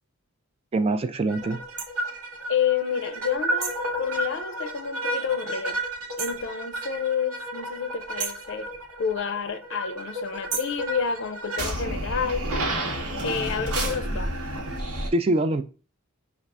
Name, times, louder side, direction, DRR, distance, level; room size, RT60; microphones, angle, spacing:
voice 1, 0.7-1.6 15.1-15.6, right 2 dB, 25° right, 0.3 m, -23 dB
sound 1, 1.3-15.1, right 1 dB, 90° right, 1.1 m, -31 dB
sound 2, 1.8-1.9 3.6-3.9 6.2-6.5 8.2-8.5 10.5-10.8, right 6 dB, 55° right, 0.7 m, -33 dB
voice 2, 2.5-5.8 6.2-8.7 9.0-12.5 13.2-14.3, left 7 dB, 60° left, 0.5 m, -29 dB
5.2 x 2.4 x 3.4 m
head